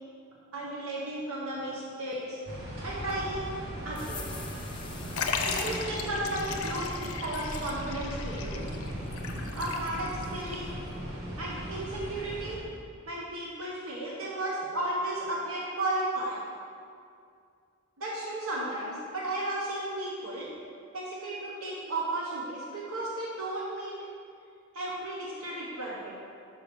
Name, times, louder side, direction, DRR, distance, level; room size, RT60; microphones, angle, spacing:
voice 1, 0.5-2.4 2.8-3.4 3.8-4.3 5.4-6.9 7.2-8.7 9.5-10.7 11.4-12.7 13.1-16.4 18.0-20.5 20.9-23.9 24.7-26.1, right 1 dB, 75° right, -4 dB, 1.0 m, -34 dB
sound 1, 2.5-12.6, equal, 45° right, 1.3 m, -38 dB
sound 2, 3.9-5.8, left 6 dB, 20° left, 0.4 m, -45 dB
Liquid, 5.2-10.2 10.5-10.6 11.6-11.7, left 5 dB, 80° left, 0.6 m, -36 dB
5.9 x 5.4 x 5.2 m, 2.3 s
head